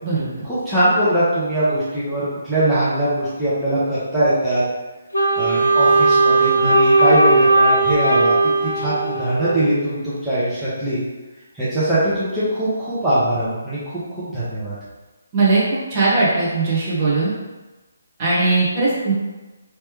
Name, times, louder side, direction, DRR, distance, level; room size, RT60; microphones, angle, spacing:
voice 1, 0.4-4.6 5.4-8.4 8.6-11.0 11.5-13.8 14.1-14.7, right 1 dB, 5° right, -14 dB, 1.0 m, -21 dB
Wind instrument woodwind instrument, 5.1-9.7, right 2 dB, 85° left, 0.7 m, -17 dB
voice 2, 15.9-17.3 18.2-19.1, right 3 dB, 30° right, -7 dB, 1.2 m, -19 dB
3.2 x 3.1 x 3.1 m, 1.1 s
figure-of-eight pair, 140°, 0 cm